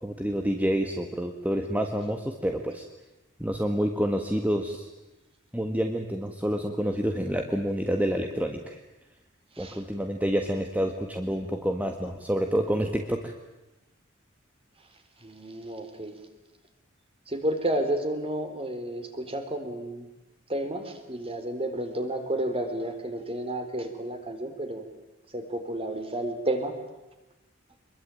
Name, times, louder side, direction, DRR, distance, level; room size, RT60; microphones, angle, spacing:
voice 1, 0.0-2.8 3.4-4.9 5.5-8.8 9.6-13.3, equal, 10° right, 4 dB, 1.7 m, -28 dB
voice 2, 15.2-16.2 17.3-20.1 20.5-24.8 25.3-26.7, right 1 dB, 30° right, 6 dB, 3.8 m, -31 dB
25.5 x 22.0 x 9.0 m, 1.0 s
head